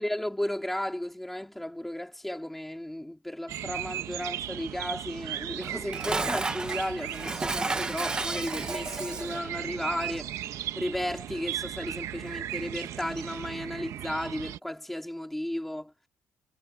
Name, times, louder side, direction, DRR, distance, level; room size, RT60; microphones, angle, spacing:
voice 1, 0.0-15.9, left 1 dB, 5° left, 3.5 m, -34 dB
sound 1, 3.5-14.6, right 12 dB, 70° right, 1.3 m, -37 dB
Dishes pots and pans, 5.6-9.4, right 3 dB, 15° right, 0.8 m, -32 dB
cardioid pair, 170°, 6 cm